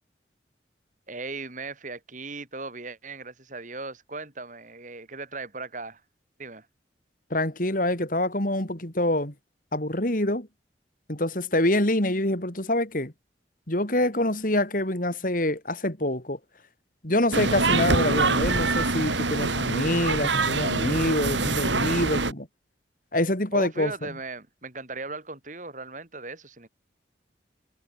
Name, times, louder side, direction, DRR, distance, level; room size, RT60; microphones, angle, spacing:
voice 1, 1.1-6.0 6.4-6.7 23.5-26.7, right 3 dB, 45° right, 4.5 m, -37 dB
voice 2, 7.3-9.3 9.7-10.5 11.1-13.1 13.7-16.4 17.0-22.5 23.1-23.9, left 1 dB, 45° left, 3.9 m, -26 dB
sound 1, 17.3-22.3, right 3 dB, 85° right, 4.4 m, -25 dB
head